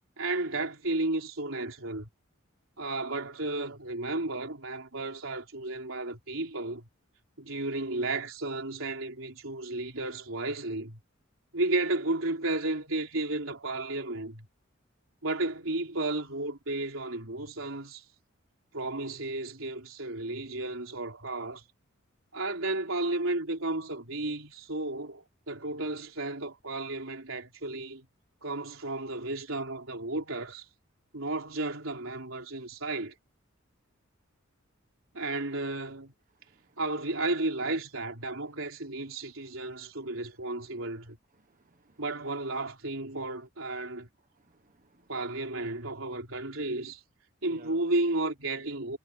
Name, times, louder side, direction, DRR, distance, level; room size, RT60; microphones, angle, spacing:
voice 1, 0.2-2.1 2.8-6.9 7.4-11.0 11.5-14.5 15.2-18.0 18.7-21.6 22.3-28.1 28.4-30.7 31.1-33.1 35.1-36.1 36.8-41.2 42.0-44.1 45.1-47.0 47.4-49.0, right 2 dB, 75° right, 3.9 m, -33 dB
voice 2, 36.3-36.8 41.4-42.0 44.3-45.1 47.5-47.8, right 3 dB, 40° right, 1.3 m, -60 dB
head